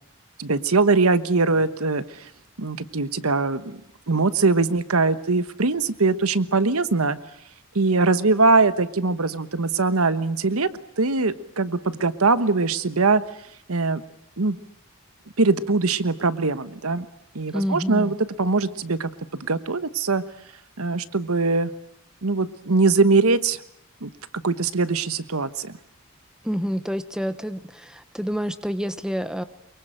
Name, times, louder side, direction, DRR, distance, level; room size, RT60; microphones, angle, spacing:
voice 1, 0.4-2.3 2.6-3.8 4.1-7.2 7.7-10.7 11.0-13.2 13.7-14.0 14.4-14.6 15.4-17.0 17.3-19.1 19.4-20.2 20.8-21.7 22.2-23.6 24.0-24.1 24.4-25.7, right 3 dB, 90° right, 14 dB, 1.2 m, -22 dB
voice 2, 17.5-18.1 26.4-29.4, equal, 5° right, 12 dB, 0.9 m, -28 dB
24.0 x 23.0 x 9.1 m, 0.73 s
head